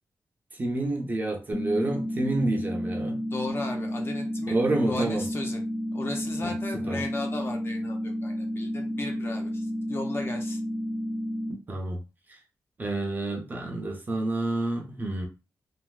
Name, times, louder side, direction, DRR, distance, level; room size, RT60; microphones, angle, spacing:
voice 1, 0.5-3.2 4.5-5.3 6.4-7.0 11.7-12.0 12.3-12.4 12.8-15.3, right 2 dB, 30° right, 2 dB, 0.5 m, -29 dB
sound 1, 1.5-11.5, equal, 85° left, 1.3 m, -31 dB
voice 2, 3.3-4.6 4.9-5.6 5.9-10.6, left 2 dB, 35° left, 2 dB, 0.7 m, -36 dB
3.2 x 2.4 x 2.3 m, 0.29 s
wide cardioid pair, 170°, 6 cm